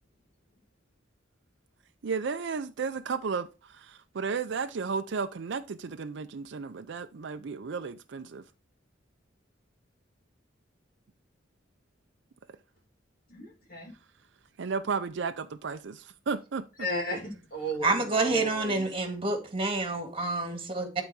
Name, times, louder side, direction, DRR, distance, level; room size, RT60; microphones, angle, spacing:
voice 1, 2.0-8.4 14.6-16.7, right 5 dB, 65° right, 0.5 m, -33 dB
voice 2, 13.3-13.9 16.8-18.9, equal, 50° left, 2.7 m, -35 dB
voice 3, 17.8-21.0, right 3 dB, 30° right, 2.0 m, -28 dB
11.5 x 3.9 x 4.7 m
head